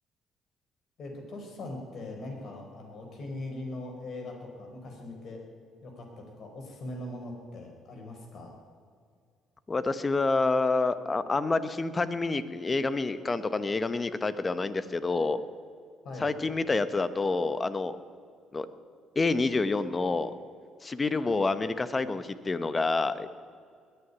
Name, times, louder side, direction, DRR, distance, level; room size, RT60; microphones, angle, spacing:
voice 1, 1.0-5.4 5.8-8.6 16.0-16.3, left 2 dB, 60° left, 1 dB, 4.5 m, -41 dB
voice 2, 9.7-15.4 16.2-18.0 18.5-18.7 19.1-20.3 20.8-23.3, left 3 dB, 30° left, 13 dB, 1.0 m, -28 dB
20.5 x 6.9 x 9.5 m, 2.1 s
hypercardioid pair, 60°, 0 cm